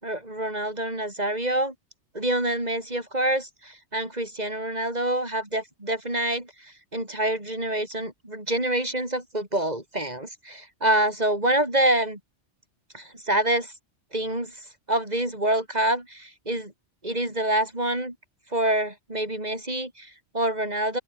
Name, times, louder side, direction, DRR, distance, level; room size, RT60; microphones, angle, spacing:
voice 1, 0.0-1.7 2.1-12.2 12.9-13.7 14.1-14.6 14.9-16.7 17.0-18.1 18.5-21.0, right 1 dB, 35° right, 5.9 m, -26 dB
open air
omnidirectional pair, 1.2 m